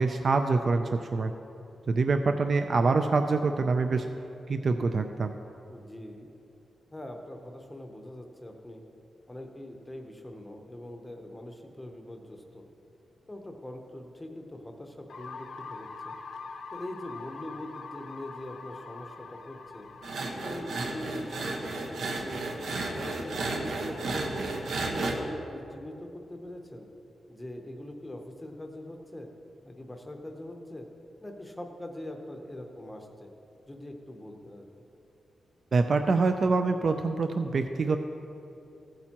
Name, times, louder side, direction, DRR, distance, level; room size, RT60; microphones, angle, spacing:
voice 1, 0.0-1.3 1.9-4.1 4.5-5.3 35.7-38.0, right 4 dB, 40° right, 6 dB, 0.3 m, -25 dB
voice 2, 5.7-6.3 6.9-8.8 9.3-12.7 13.3-16.2 16.7-19.9 20.4-22.4 22.7-24.4 24.8-26.9 27.3-29.3 29.6-30.9 31.2-33.3 33.7-34.7, left 1 dB, 10° left, 3 dB, 0.7 m, -42 dB
sound 1, 15.1-23.0, left 4 dB, 60° left, 0.6 m, -45 dB
sound 2, 20.0-25.1, right 2 dB, 85° right, 1.1 m, -33 dB
15.0 x 8.7 x 2.9 m, 2.8 s
wide cardioid pair, 175°, 0 cm